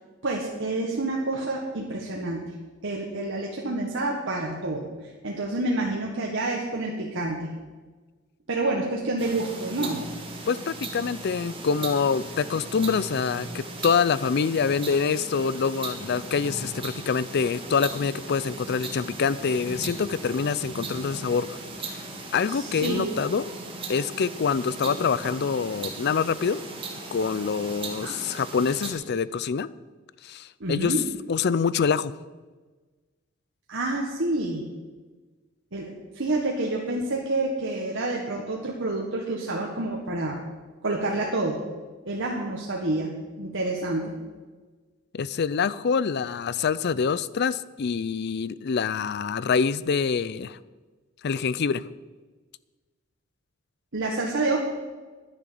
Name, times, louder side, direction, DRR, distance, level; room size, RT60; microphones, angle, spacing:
voice 1, 0.2-2.4 2.8-7.5 8.5-10.0 22.5-23.2 28.0-28.2 30.6-31.0 33.7-34.6 35.7-40.4 40.8-41.6 42.0-44.1 53.9-54.6, right 2 dB, 65° right, -1 dB, 1.5 m, -28 dB
sound 1, 9.2-28.9, right 3 dB, 25° right, 2.0 m, -38 dB
voice 2, 10.5-21.6 21.9-22.0 22.3-23.4 23.9-26.6 27.1-29.7 30.2-30.9 31.3-32.1 45.1-50.6 51.2-51.8, left 6 dB, 55° left, 18 dB, 0.4 m, -25 dB
10.5 x 10.0 x 6.9 m, 1.3 s
head